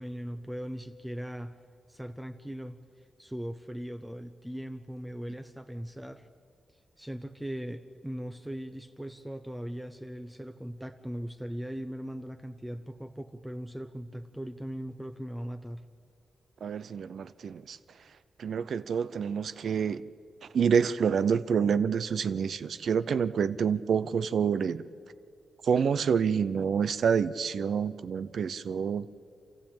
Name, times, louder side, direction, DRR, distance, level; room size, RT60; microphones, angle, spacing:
voice 1, 0.0-1.6 1.9-2.8 3.2-6.3 7.0-15.8, equal, 5° right, 8 dB, 0.7 m, -39 dB
voice 2, 16.6-17.8 18.4-20.1 20.5-24.8 25.6-29.1, right 7 dB, 65° right, 14 dB, 0.6 m, -27 dB
27.5 x 14.5 x 8.8 m, 2.5 s
wide cardioid pair, 150°, 0 cm